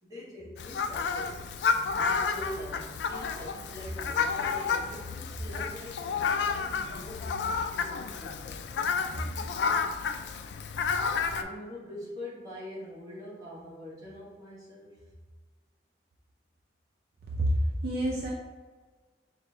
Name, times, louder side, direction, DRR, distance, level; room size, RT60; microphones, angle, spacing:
voice 1, 0.0-1.4 2.1-7.4 7.8-8.6 9.1-9.4 11.3-15.0, left 1 dB, 20° right, -7 dB, 1.3 m, -42 dB
Fowl, 0.6-11.4, left 5 dB, 75° left, 0.3 m, -31 dB
voice 2, 17.4-18.3, equal, 55° right, -2 dB, 0.5 m, -27 dB
4.9 x 2.2 x 3.7 m, 1.4 s
head